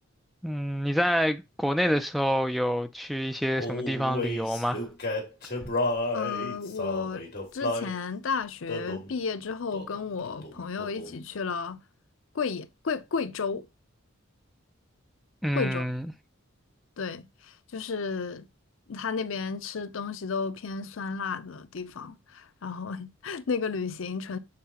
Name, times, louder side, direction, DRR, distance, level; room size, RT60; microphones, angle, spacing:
voice 1, 0.4-4.8 15.4-16.1, equal, ahead, 0.4 m, -27 dB
Male singing, 3.5-7.9 8.7-9.1 9.7-10.0 10.3-11.2, left 2 dB, 45° left, 1.9 m, -32 dB
voice 2, 6.1-7.3 7.5-11.8 12.3-13.7 15.6-15.8 17.0-18.5 18.9-24.4, left 5 dB, 65° left, 0.6 m, -33 dB
7.5 x 4.6 x 2.9 m
head